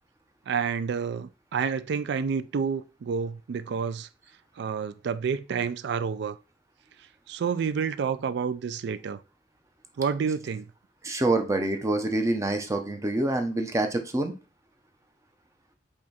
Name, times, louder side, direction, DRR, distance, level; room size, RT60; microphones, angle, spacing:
voice 1, 0.5-4.1 4.6-6.4 7.3-9.2 10.0-10.7, right 6 dB, 65° right, 0.3 m, -29 dB
voice 2, 11.0-14.3, right 2 dB, 15° right, 0.6 m, -26 dB
4.9 x 2.3 x 4.2 m
head